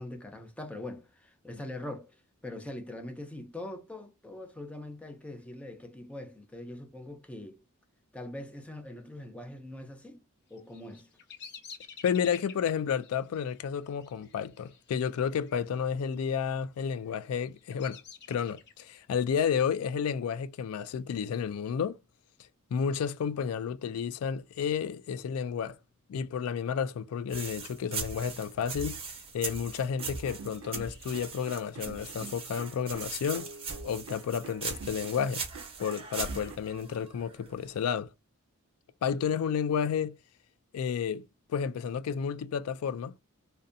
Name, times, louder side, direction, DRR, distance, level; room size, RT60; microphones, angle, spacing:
voice 1, 0.0-2.2 2.4-7.6 8.1-10.2 10.5-11.1, left 1 dB, 5° left, 0.5 m, -42 dB
Bird vocalization bird call bird song, 10.5-15.6 15.8-16.4 17.0-19.0, left 6 dB, 55° left, 0.7 m, -50 dB
voice 2, 12.0-18.0 18.3-22.0 22.7-25.8 26.1-29.0 29.3-33.5 33.8-35.4 35.8-38.1 39.0-40.2 40.7-41.2 41.5-43.1, left 7 dB, 75° left, 0.3 m, -31 dB
sound 1, 27.3-37.8, right 5 dB, 25° right, 0.7 m, -40 dB
sound 2, 30.0-36.6, right 5 dB, 70° right, 0.4 m, -47 dB
2.6 x 2.1 x 2.4 m
head